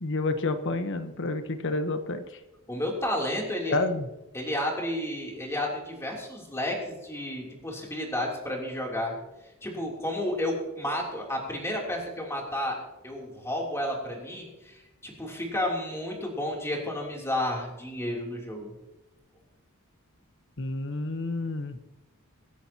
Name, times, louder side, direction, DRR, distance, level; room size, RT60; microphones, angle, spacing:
voice 1, 0.0-2.2 3.7-4.1 20.6-21.8, left 2 dB, 60° left, 9 dB, 1.1 m, -29 dB
voice 2, 2.7-3.8 4.3-9.1 9.6-12.8 13.0-18.7, left 1 dB, 15° left, -1 dB, 3.2 m, -31 dB
25.5 x 10.0 x 2.9 m, 1.0 s
head